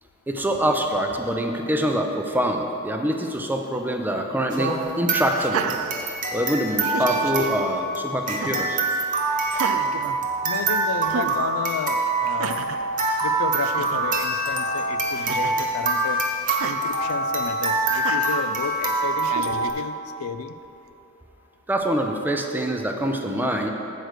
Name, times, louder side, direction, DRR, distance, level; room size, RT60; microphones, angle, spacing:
voice 1, 0.3-5.7 6.3-8.8 21.7-23.7, equal, 10° right, 3 dB, 0.4 m, -25 dB
sound 1, 4.5-19.7, right 2 dB, 40° right, 1.0 m, -25 dB
Laughter, 5.3-6.4 6.8-7.5 8.3-8.7 9.5-10.7 11.1-11.4 12.2-12.8 13.3-13.4 13.6-14.0 15.1-15.7 16.5-16.8 17.9-18.4 19.2-19.8, right 7 dB, 75° right, 0.4 m, -32 dB
voice 2, 10.4-12.7 13.2-16.2 16.6-20.5, left 6 dB, 85° left, 10 dB, 0.4 m, -32 dB
7.7 x 4.7 x 6.5 m, 2.9 s
head